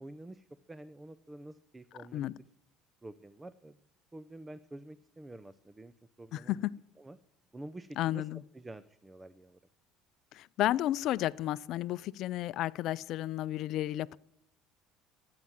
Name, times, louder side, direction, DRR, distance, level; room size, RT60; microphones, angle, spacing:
voice 1, 0.0-2.2 3.0-3.7 4.1-5.9 6.2-6.7 7.0-7.2 7.5-8.3 8.5-9.6, right 1 dB, 15° right, 0.6 m, -48 dB
voice 2, 6.3-6.7 8.0-8.4 10.3-14.2, left 14 dB, 65° left, 0.5 m, -32 dB
14.5 x 9.6 x 7.3 m
supercardioid pair, 95°, 0 cm